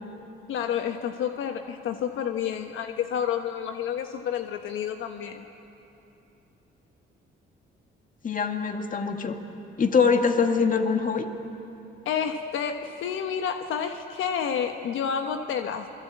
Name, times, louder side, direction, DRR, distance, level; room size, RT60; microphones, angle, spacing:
voice 1, 0.5-5.5 12.0-15.9, left 8 dB, 80° left, 5 dB, 1.2 m, -29 dB
voice 2, 8.2-9.4 9.8-11.3, left 5 dB, 40° left, 5 dB, 2.1 m, -23 dB
27.0 x 21.0 x 8.4 m, 3.0 s
cardioid pair, 90°, 20 cm